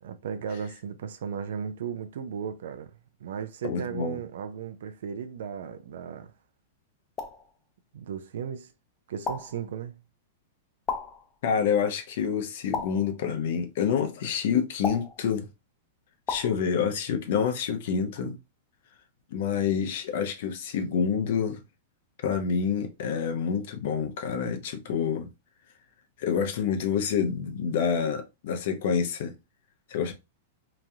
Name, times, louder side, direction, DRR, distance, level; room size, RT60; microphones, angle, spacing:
voice 1, 0.0-2.9 3.2-6.3 7.9-8.7 9.1-10.0, right 7 dB, 75° right, 0.4 m, -36 dB
voice 2, 3.6-4.2 11.4-15.5 16.3-18.4 19.3-21.6 22.2-25.3 26.2-29.3 29.9-30.1, left 7 dB, 65° left, 0.7 m, -27 dB
sound 1, 7.2-7.5 9.3-9.6 10.9-11.3 12.7-13.2 14.8-15.2 16.3-16.6, left 5 dB, 20° left, 0.5 m, -33 dB
3.0 x 2.4 x 2.6 m
hypercardioid pair, 140°, 0 cm